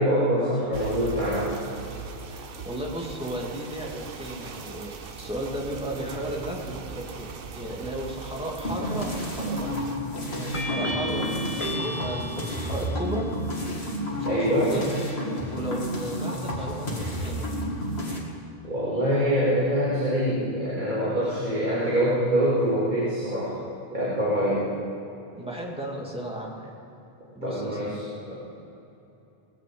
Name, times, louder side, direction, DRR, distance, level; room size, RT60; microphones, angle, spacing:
voice 1, 0.0-1.5 14.2-14.7 18.6-23.5 23.9-24.7 27.4-28.3, equal, 45° right, -9 dB, 3.3 m, -24 dB
sound 1, 0.7-10.0, right 5 dB, 60° right, 1.1 m, -40 dB
voice 2, 2.3-9.8 10.3-13.3 14.3-14.8 15.5-17.5 25.3-26.7 27.3-27.9, right 1 dB, 5° right, -3 dB, 2.6 m, -34 dB
sound 2, 8.6-18.2, equal, 75° left, 2.4 m, -31 dB
sound 3, 8.8-9.3 10.5-13.3, equal, 30° left, 1.6 m, -33 dB
21.0 x 7.6 x 7.9 m, 2.9 s
omnidirectional pair, 1.1 m